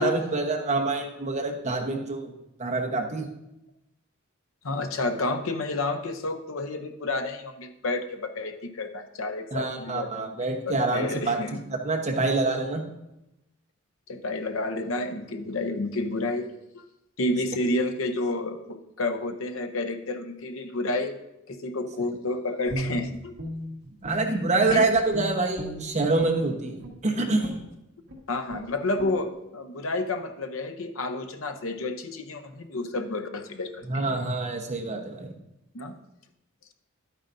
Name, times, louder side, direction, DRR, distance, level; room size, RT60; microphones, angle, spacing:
voice 1, 0.0-2.3 2.6-3.3 9.5-11.4 11.7-12.8 24.0-27.5 33.9-35.3, right 3 dB, 35° right, 2 dB, 1.1 m, -26 dB
voice 2, 4.6-11.6 14.1-16.5 16.7-16.8 17.2-21.2 21.5-23.3 24.7-24.8 28.3-34.1 35.7-35.9, left 2 dB, 70° left, 8 dB, 0.7 m, -30 dB
Guitar, 22.7-24.4 24.7-26.4 26.8-27.0 27.4-27.7 28.1-28.2 28.5-28.7 29.0-29.2, equal, 55° right, 1.7 m, -36 dB
11.5 x 9.0 x 2.6 m, 0.90 s
head